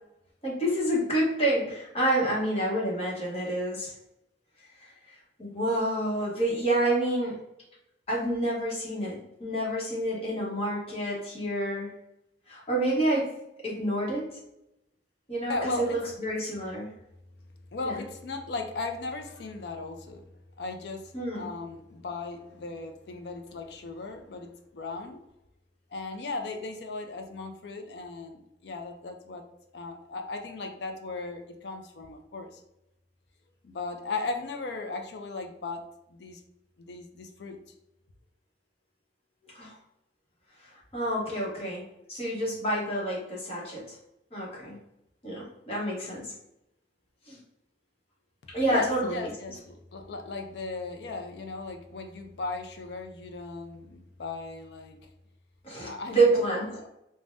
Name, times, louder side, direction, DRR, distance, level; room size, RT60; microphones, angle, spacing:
voice 1, 0.4-3.9 4.8-4.9 5.4-7.4 8.1-11.9 12.5-13.3 13.6-14.3 15.3-16.9 17.8-18.0 21.1-21.5 39.5-39.7 40.9-41.8 42.1-43.8 44.3-44.8 45.2-46.3 47.3-47.4 48.5-49.3 55.6-56.7, right 1 dB, 35° left, -5 dB, 1.0 m, -28 dB
voice 2, 15.5-16.0 17.7-20.2 20.6-25.2 25.9-29.4 29.7-32.6 33.6-35.8 36.1-36.4 36.8-37.6 48.7-55.0 55.8-56.8, left 3 dB, 60° left, 5 dB, 0.4 m, -37 dB
3.3 x 2.1 x 2.5 m, 0.85 s
head